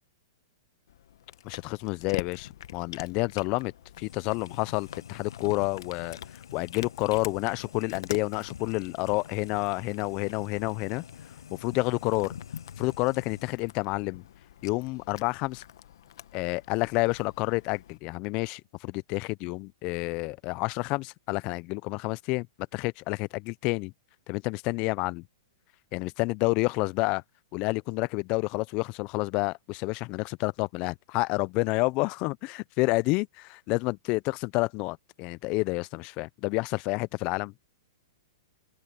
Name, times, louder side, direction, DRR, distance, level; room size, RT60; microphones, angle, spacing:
Cat, 0.9-18.0, left 11 dB, 65° left, 1.3 m, -46 dB
voice 1, 1.4-3.7 4.0-6.2 6.5-11.0 11.6-12.3 12.8-14.2 14.6-15.6 16.3-22.5 22.7-23.9 24.3-25.2 25.9-27.2 27.5-37.5, left 25 dB, 40° left, 0.5 m, -29 dB
sound 1, 4.0-13.5, left 7 dB, 85° left, 5.9 m, -46 dB
open air
hypercardioid pair, 130°, 2 cm